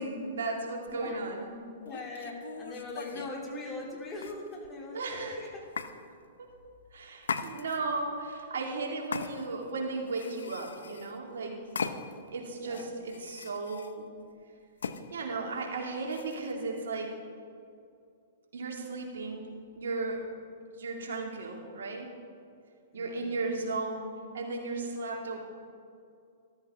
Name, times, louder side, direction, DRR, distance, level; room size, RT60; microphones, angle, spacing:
voice 1, 0.0-1.5 4.9-5.5 6.4-6.5 6.9-11.6 12.3-14.1 15.1-17.1 18.5-19.5 19.8-20.2 20.7-22.1 22.9-25.4, right 3 dB, 70° right, 1 dB, 2.4 m, -35 dB
sound 1, 0.9-1.0 1.8-3.4 4.2-4.8 5.8-5.9 7.2-8.0 9.1-9.7 10.1-11.2 11.8-12.3 12.7-13.9 14.8-15.0 16.1-16.5, left 5 dB, 80° left, 0.7 m, -39 dB
voice 2, 1.8-5.5 12.6-13.0 22.9-23.2, left 2 dB, 20° left, -2 dB, 3.0 m, -41 dB
13.5 x 13.0 x 3.7 m, 2.4 s
hypercardioid pair, 115°, 0 cm